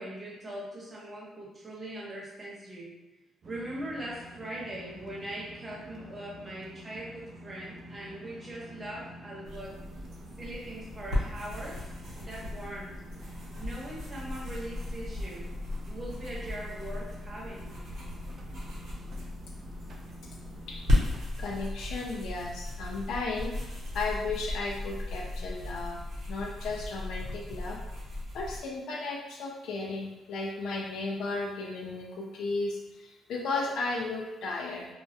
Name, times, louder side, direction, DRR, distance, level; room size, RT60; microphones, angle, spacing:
voice 1, 0.0-2.9 3.5-9.7 10.4-11.9 12.1-13.3 13.6-15.5 15.8-17.8, right 1 dB, 30° right, -6 dB, 0.9 m, -41 dB
sound 1, 3.4-21.2, right 1 dB, 50° right, 0.4 m, -48 dB
sound 2, 9.4-28.6, left 1 dB, 75° right, 0.9 m, -36 dB
voice 2, 21.4-26.0 26.3-27.8 28.3-34.9, left 3 dB, 80° left, -1 dB, 0.4 m, -34 dB
2.2 x 2.0 x 2.7 m, 1.1 s
cardioid pair, 90°, 0 cm